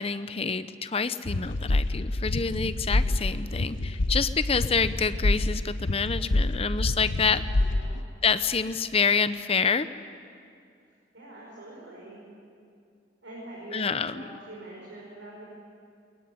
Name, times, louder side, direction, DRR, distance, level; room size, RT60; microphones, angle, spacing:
voice 1, 0.0-7.4 8.2-9.9 13.7-14.2, left 5 dB, 30° left, 13 dB, 0.7 m, -27 dB
sound 1, 1.2-8.0, left 2 dB, 85° left, 0.9 m, -27 dB
voice 2, 7.7-8.0 11.1-12.2 13.2-15.5, right 2 dB, 80° right, -4 dB, 5.5 m, -44 dB
21.5 x 21.0 x 9.6 m, 2.4 s
head